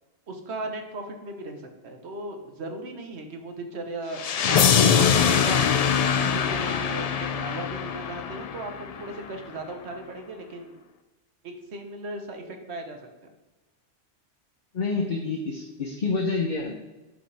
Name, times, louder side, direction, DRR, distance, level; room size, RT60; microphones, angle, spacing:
voice 1, 0.3-4.6 4.8-5.6 6.2-10.8 11.4-13.0, right 2 dB, 70° right, 4 dB, 1.3 m, -37 dB
sound 1, 4.2-9.1, left 7 dB, 65° left, 0.4 m, -23 dB
voice 2, 14.7-16.7, left 4 dB, 50° left, 2 dB, 0.8 m, -28 dB
11.5 x 5.1 x 3.4 m, 1.1 s
omnidirectional pair, 1.2 m